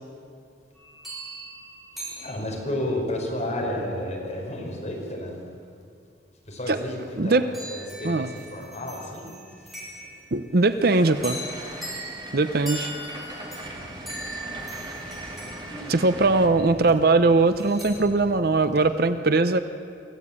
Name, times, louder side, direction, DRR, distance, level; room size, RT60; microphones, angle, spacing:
sound 1, 0.7-2.9 7.5-10.4 11.2-16.6 17.6-17.9, right 1 dB, ahead, 5.9 m, -39 dB
voice 1, 2.2-5.4 6.4-9.3 9.6-10.1 11.5-11.8 14.6-14.8 15.2-16.2, left 1 dB, 40° left, -1 dB, 4.9 m, -32 dB
voice 2, 7.2-7.5 8.0-8.3 10.3-11.4 12.3-12.9 15.9-19.6, right 3 dB, 55° right, 11 dB, 0.8 m, -20 dB
sound 2, 10.8-16.5, right 1 dB, 25° right, 2.6 m, -40 dB
sound 3, 13.6-18.9, equal, 75° left, 7.6 m, -45 dB
24.0 x 15.0 x 8.6 m, 2.3 s
head